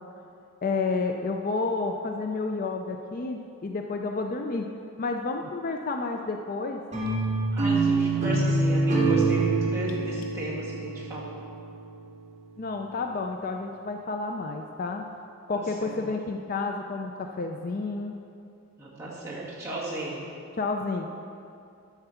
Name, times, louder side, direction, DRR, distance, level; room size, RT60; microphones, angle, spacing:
voice 1, 0.6-4.7 5.0-6.8 12.6-15.0 15.5-18.2 20.6-21.1, left 3 dB, 40° left, 3 dB, 0.4 m, -30 dB
sound 1, 6.9-12.0, right 3 dB, 30° right, 2.1 m, -25 dB
voice 2, 7.5-11.4 15.5-16.1 18.8-20.2, right 2 dB, 15° right, -9 dB, 2.2 m, -35 dB
11.5 x 4.6 x 7.0 m, 2.5 s
head